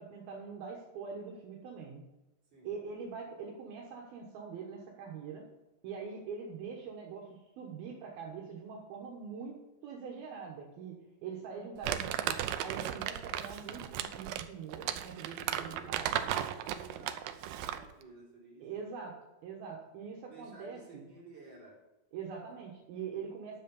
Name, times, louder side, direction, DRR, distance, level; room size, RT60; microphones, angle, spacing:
voice 1, 0.0-2.1 2.6-5.4 5.8-16.1 18.6-19.2 19.4-21.0 22.1-23.6, right 5 dB, 70° right, -1 dB, 3.0 m, -43 dB
Crumpling crinkling, 11.8-17.9, right 11 dB, 90° right, 2.0 m, -35 dB
voice 2, 15.4-18.9 20.3-21.8, right 3 dB, 30° right, -5 dB, 3.9 m, -54 dB
10.5 x 7.5 x 5.3 m, 1.0 s
omnidirectional pair, 4.7 m